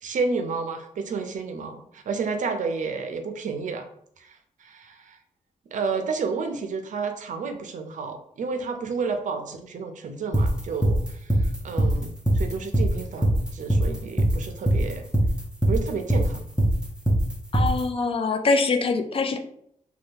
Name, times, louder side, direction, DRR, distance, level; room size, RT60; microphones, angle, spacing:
voice 1, 0.0-3.9 4.2-5.2 5.7-15.0 15.7-16.4, right 4 dB, 65° right, 6 dB, 0.5 m, -31 dB
sound 1, 10.3-17.8, right 1 dB, 5° right, 0.5 m, -21 dB
voice 2, 17.5-19.4, left 3 dB, 45° left, 7 dB, 0.4 m, -23 dB
2.7 x 2.3 x 3.4 m, 0.70 s
wide cardioid pair, 105°, 14 cm